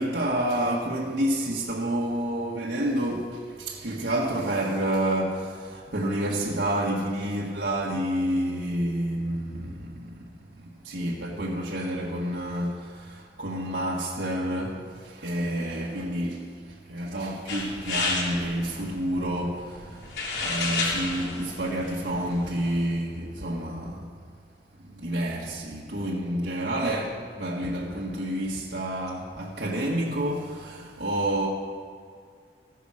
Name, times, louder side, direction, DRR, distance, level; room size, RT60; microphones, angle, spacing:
voice 1, 0.0-10.2 10.6-24.1 24.9-31.5, right 1 dB, 85° right, 1.6 m, -29 dB
sound 1, 17.5-22.9, left 3 dB, 75° left, 3.5 m, -32 dB
15.0 x 10.0 x 6.4 m
head